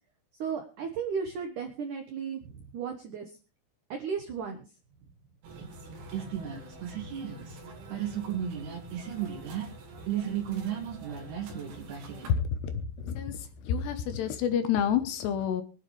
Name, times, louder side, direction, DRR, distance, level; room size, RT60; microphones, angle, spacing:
voice 1, 0.3-3.4 3.9-4.6, right 6 dB, 80° right, 5 dB, 1.8 m, -35 dB
sound 1, 5.4-12.3, right 8 dB, 60° right, 4.0 m, -35 dB
voice 2, 12.3-12.7 13.0-13.4 13.6-15.6, left 8 dB, 70° left, 9 dB, 2.8 m, -28 dB
23.5 x 9.6 x 3.2 m, 0.34 s
omnidirectional pair, 5.6 m